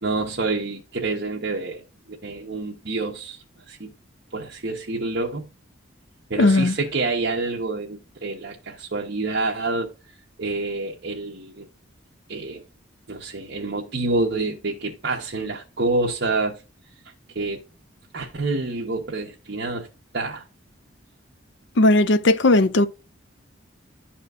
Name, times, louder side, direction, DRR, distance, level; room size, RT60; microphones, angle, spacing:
voice 1, 0.0-3.9 4.3-5.5 6.3-9.9 10.4-11.6 12.3-12.6 13.1-16.6 17.3-17.6 18.1-19.9 20.1-20.4, right 3 dB, 55° right, 1.2 m, -27 dB
voice 2, 6.4-6.7 21.8-22.9, left 2 dB, 65° left, 0.6 m, -17 dB
12.0 x 4.3 x 2.6 m
head